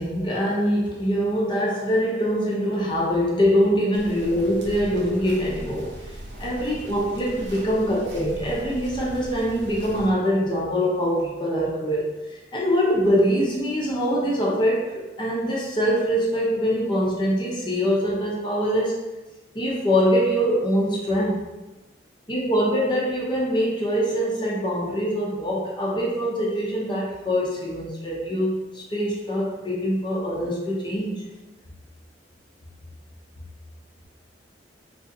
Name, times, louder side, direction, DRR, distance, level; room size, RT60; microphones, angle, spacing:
voice 1, 0.0-5.9 6.4-12.1 12.5-19.0 19.5-21.5 22.3-31.2, equal, 25° left, -4 dB, 0.7 m, -23 dB
sound 1, 3.9-10.1, right 1 dB, 80° right, 0.9 m, -39 dB
3.8 x 3.0 x 2.6 m, 1.1 s
head